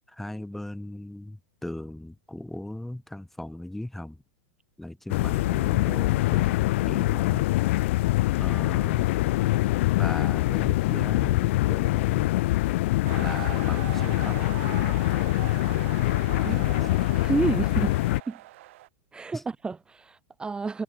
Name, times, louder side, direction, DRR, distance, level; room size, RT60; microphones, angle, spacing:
voice 1, 0.1-4.2 4.8-6.6 6.9-7.5 8.4-9.1 10.0-12.3 13.2-14.5 16.4-16.9 19.3-19.4, left 1 dB, 5° left, 5.3 m, -38 dB
sound 1, 5.1-18.2, left 18 dB, 65° left, 2.1 m, -24 dB
sound 2, 13.0-18.9, right 17 dB, 65° right, 7.0 m, -41 dB
voice 2, 17.1-18.0 18.3-18.4 19.1-20.8, right 4 dB, 10° right, 1.8 m, -30 dB
hypercardioid pair, 125°, 7 cm